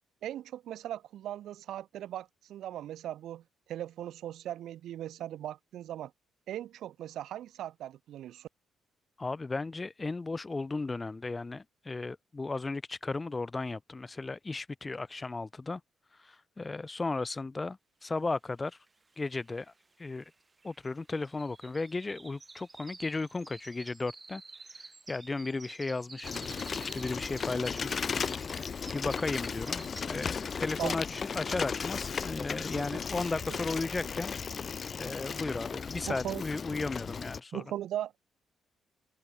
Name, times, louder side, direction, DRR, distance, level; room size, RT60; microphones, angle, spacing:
voice 1, 0.2-3.4 3.7-6.1 6.5-8.5 30.8-30.9 32.8-33.0 33.5-33.6 36.1-36.4 37.5-38.2, right 12 dB, 75° right, 0.5 m, -39 dB
voice 2, 9.2-15.8 16.2-18.8 19.2-19.7 20.0-20.3 20.6-24.4 24.8-28.2 28.9-34.3 35.0-37.6, left 3 dB, 25° left, 1.5 m, -35 dB
sound 1, 18.9-19.0 19.1-30.6 31.0-31.3 31.7-31.8, right 3 dB, 25° right, 2.6 m, -51 dB
Bicycle, 26.2-37.4, left 6 dB, 45° left, 0.9 m, -36 dB
cardioid pair, 90°, 0 cm